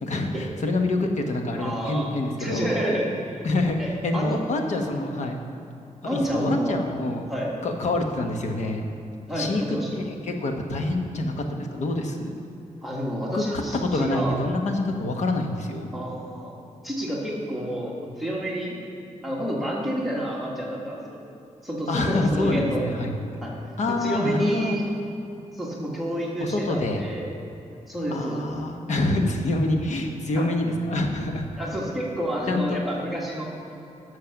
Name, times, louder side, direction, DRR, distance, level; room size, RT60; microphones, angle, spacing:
voice 1, 0.0-2.7 3.4-5.4 6.0-7.3 7.6-8.9 9.3-12.3 13.3-15.9 21.9-23.1 23.8-24.8 26.4-27.0 28.1-31.5 32.5-32.8, left 2 dB, 70° left, 4 dB, 1.1 m, -26 dB
voice 2, 1.6-2.1 2.4-3.5 3.8-4.4 6.0-6.7 7.3-7.5 9.3-9.9 12.8-14.4 15.9-16.5 16.8-17.9 18.2-18.8 19.2-21.2 21.6-22.9 23.4-23.5 24.0-24.9 25.5-27.3 27.9-28.5 30.4-30.5 31.6-33.5, equal, ahead, -4 dB, 1.8 m, -29 dB
12.5 x 6.6 x 5.9 m, 2.9 s
wide cardioid pair, 150°, 13 cm